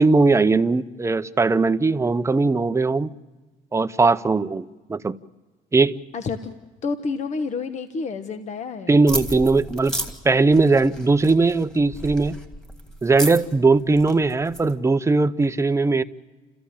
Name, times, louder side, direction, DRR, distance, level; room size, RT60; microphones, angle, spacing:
voice 1, 0.0-3.1 3.7-5.2 5.7-6.0 8.9-9.9 10.2-12.4 13.0-16.0, right 3 dB, 15° right, 0.7 m, -19 dB
voice 2, 6.1-6.5 6.8-9.0, left 4 dB, 45° left, 1.1 m, -29 dB
sound 1, 9.1-14.7, right 1 dB, 5° left, 2.5 m, -33 dB
29.5 x 14.5 x 8.7 m
cardioid pair, 110°, 17 cm